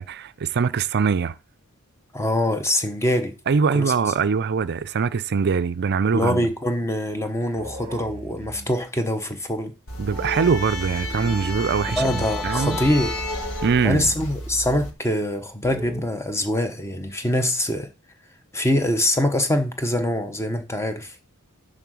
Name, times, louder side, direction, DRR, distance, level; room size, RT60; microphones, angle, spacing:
voice 1, 0.0-1.4 3.5-6.4 10.0-12.0 12.4-12.8 13.6-14.1, right 5 dB, 50° right, 0.5 m, -22 dB
voice 2, 2.1-3.3 3.7-3.9 6.1-9.7 12.0-13.1 13.8-17.9 18.5-21.1, left 1 dB, 10° left, 0.9 m, -24 dB
sound 1, 7.6-8.8 10.1-14.3 15.6-16.0, right 1 dB, 25° right, 1.0 m, -39 dB
sound 2, 9.9-14.9, left 1 dB, 65° left, 1.7 m, -31 dB
10.5 x 3.7 x 6.3 m
head